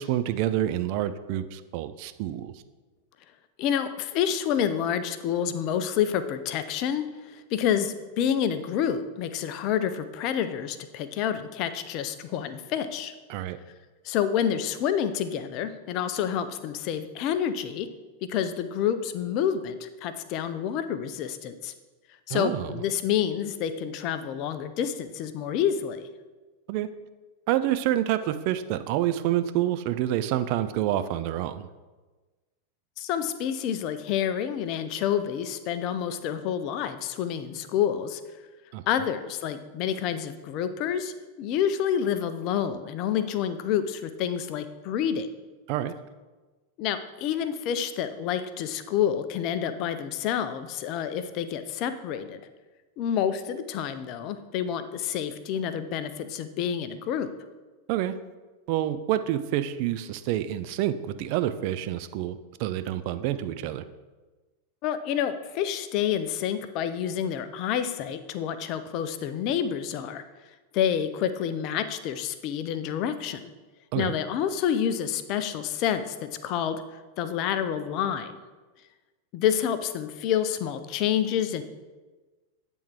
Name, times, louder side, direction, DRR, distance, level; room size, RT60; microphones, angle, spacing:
voice 1, 0.0-2.6 13.3-13.6 22.3-22.7 26.7-26.9 27.5-31.7 38.7-38.8 45.7-45.9 57.9-58.2 58.7-63.8 73.9-74.1, right 12 dB, 45° right, 11 dB, 0.3 m, -28 dB
voice 2, 3.6-13.1 14.0-17.9 18.3-21.7 22.3-26.1 33.0-38.2 38.9-45.3 46.8-52.4 53.0-57.3 64.8-70.2 70.7-73.5 74.0-78.4 79.3-81.6, left 9 dB, 40° left, 11 dB, 0.4 m, -28 dB
8.6 x 3.6 x 4.4 m, 1.3 s
figure-of-eight pair, 90°, 0 cm